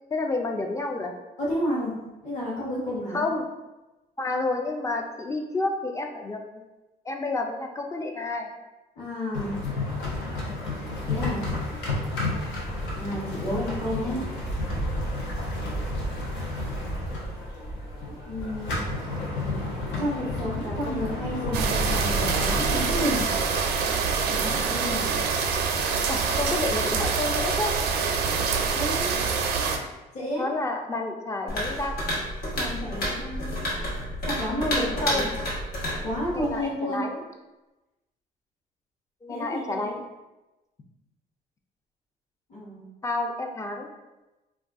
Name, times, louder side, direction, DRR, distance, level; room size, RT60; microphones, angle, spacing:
voice 1, 0.1-1.1 3.1-3.5 4.2-6.7 7.0-8.5 10.5-10.6 20.6-21.0 26.1-27.7 30.4-32.0 34.8-35.3 36.3-37.2 39.2-39.9 43.0-43.9, left 2 dB, 20° left, 3 dB, 0.4 m, -30 dB
voice 2, 1.4-1.9 2.2-3.2 9.0-9.6 11.0-11.4 13.0-14.2 18.3-18.8 20.0-23.3 24.3-25.1 28.7-29.1 30.1-30.5 32.6-33.6 34.3-35.3 36.0-37.1 39.3-40.0 42.5-42.9, left 1 dB, 45° left, -6 dB, 1.0 m, -31 dB
sound 1, 9.3-23.2, left 1 dB, 85° left, 0.8 m, -31 dB
sound 2, 21.5-29.8, right 5 dB, 70° right, 0.4 m, -25 dB
sound 3, 31.5-36.7, equal, 65° left, 1.1 m, -30 dB
2.4 x 2.3 x 3.5 m, 1.1 s
cardioid pair, 110°, 17 cm